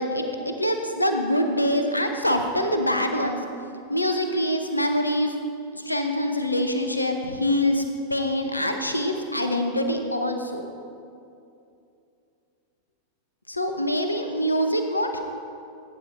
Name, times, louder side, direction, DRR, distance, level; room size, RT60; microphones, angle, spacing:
voice 1, 0.0-3.4 3.9-5.4 5.7-7.8 8.1-10.6 13.5-15.2, equal, 85° left, 6 dB, 0.8 m, -24 dB
16.5 x 9.2 x 3.1 m, 2.6 s
figure-of-eight pair, 90°, 0 cm